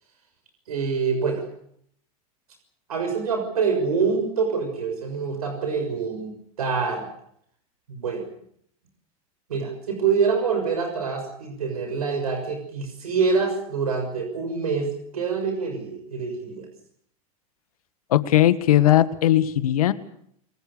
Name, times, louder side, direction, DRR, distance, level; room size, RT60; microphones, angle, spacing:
voice 1, 0.7-1.4 2.9-7.1 7.9-8.3 9.5-16.7, right 5 dB, 90° right, 5 dB, 6.6 m, -26 dB
voice 2, 18.1-19.9, left 13 dB, 80° left, 12 dB, 1.8 m, -18 dB
27.5 x 20.5 x 6.9 m, 0.69 s
hypercardioid pair, 105°, 19 cm